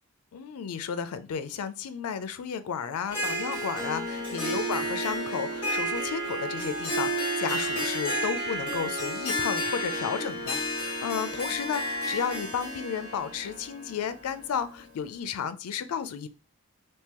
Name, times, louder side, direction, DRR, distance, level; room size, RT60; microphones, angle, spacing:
voice 1, 0.3-16.3, left 7 dB, 85° left, 0.4 m, -33 dB
Harp, 3.1-14.9, equal, 25° left, 1.3 m, -31 dB
3.6 x 2.7 x 2.9 m
head